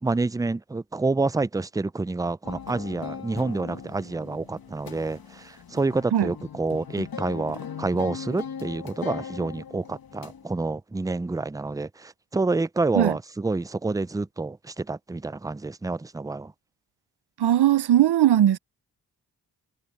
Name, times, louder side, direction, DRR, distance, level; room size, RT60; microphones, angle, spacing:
voice 1, 0.0-16.5, right 3 dB, 10° right, 0.4 m, -28 dB
sound 1, 2.4-10.5, left 7 dB, 60° left, 1.5 m, -39 dB
voice 2, 17.4-18.6, right 11 dB, 75° right, 0.7 m, -19 dB
cardioid pair, 60°, 40 cm